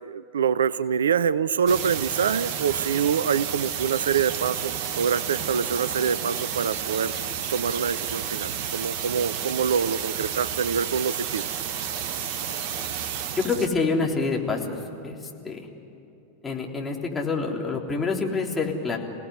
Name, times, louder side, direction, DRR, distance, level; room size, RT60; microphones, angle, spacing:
voice 1, 0.0-7.1 7.5-11.5, right 7 dB, 65° right, 18 dB, 0.5 m, -25 dB
sound 1, 1.7-13.7, right 8 dB, 45° right, 1.3 m, -31 dB
voice 2, 13.4-14.8 15.0-15.1 15.4-15.7 16.4-19.0, left 4 dB, 15° left, -1 dB, 3.5 m, -26 dB
28.5 x 18.0 x 9.9 m, 2.8 s
figure-of-eight pair, 90°, 0 cm